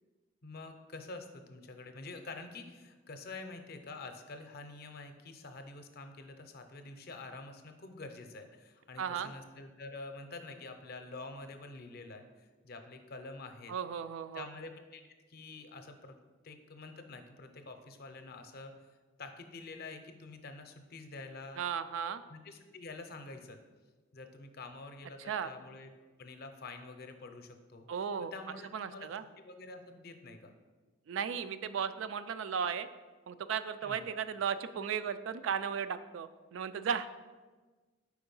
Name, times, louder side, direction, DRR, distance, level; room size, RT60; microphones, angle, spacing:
voice 1, 0.4-13.7 14.3-16.2 16.4-18.7 19.2-21.7 22.3-23.6 24.1-25.9 26.2-27.9 28.2-29.1 29.4-30.5 33.8-34.0, left 3 dB, 55° left, 7 dB, 0.6 m, -47 dB
voice 2, 9.0-9.3 13.7-14.5 21.6-22.2 25.3-25.5 27.9-28.3 28.7-29.2 31.1-32.9 33.3-37.3, right 7 dB, 80° right, 12 dB, 0.3 m, -35 dB
4.7 x 4.4 x 5.3 m, 1.3 s
head